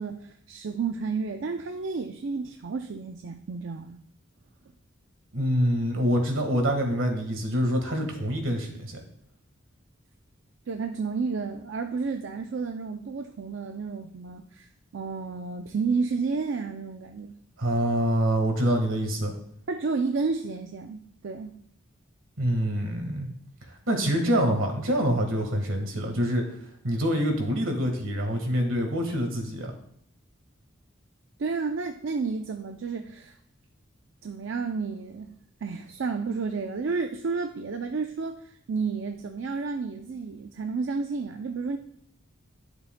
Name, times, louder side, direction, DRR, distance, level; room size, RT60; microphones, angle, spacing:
voice 1, 0.0-4.0 10.7-17.3 19.7-21.6 31.4-33.3 34.2-35.3 35.6-41.8, right 4 dB, 65° right, 5 dB, 0.4 m, -31 dB
voice 2, 5.3-8.9 17.6-19.3 22.4-23.3 23.9-26.4 26.8-29.7, equal, 80° right, 3 dB, 1.6 m, -25 dB
11.0 x 6.8 x 2.2 m, 0.69 s
head